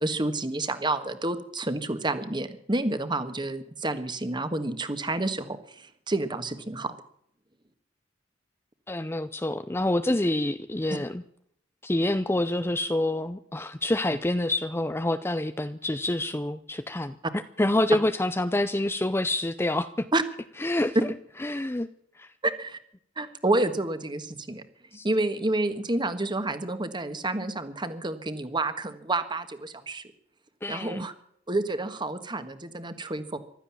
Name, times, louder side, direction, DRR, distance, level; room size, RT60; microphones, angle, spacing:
voice 1, 0.0-6.9 20.1-20.2 20.9-21.0 22.4-22.8 23.2-24.6 25.0-30.0 30.7-31.1 31.5-33.4, right 2 dB, 25° right, 10 dB, 1.6 m, -29 dB
voice 2, 8.9-11.2 11.8-20.1 20.6-21.0 21.4-21.9 22.2-22.3 24.9-25.1 30.6-31.1, left 1 dB, 15° left, 11 dB, 0.6 m, -27 dB
15.5 x 12.5 x 7.3 m, 0.66 s
head